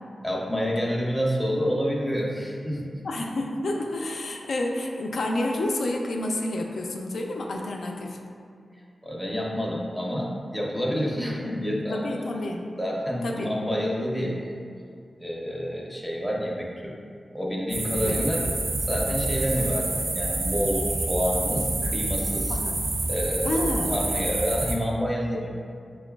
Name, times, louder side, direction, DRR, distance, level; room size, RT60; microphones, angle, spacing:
voice 1, 0.2-2.9 9.0-12.2 12.8-14.5 15.2-16.9 17.3-18.4 18.9-22.6 23.1-25.5, equal, ahead, -3 dB, 0.5 m, -28 dB
voice 2, 3.0-8.2 11.9-12.6 13.2-13.5 18.0-18.2 22.5-22.8 23.4-23.9, left 1 dB, 80° left, 1 dB, 0.4 m, -29 dB
sound 1, 17.7-24.8, right 2 dB, 80° right, 0.4 m, -28 dB
5.7 x 2.2 x 2.2 m, 2.3 s
wide cardioid pair, 85°, 0 cm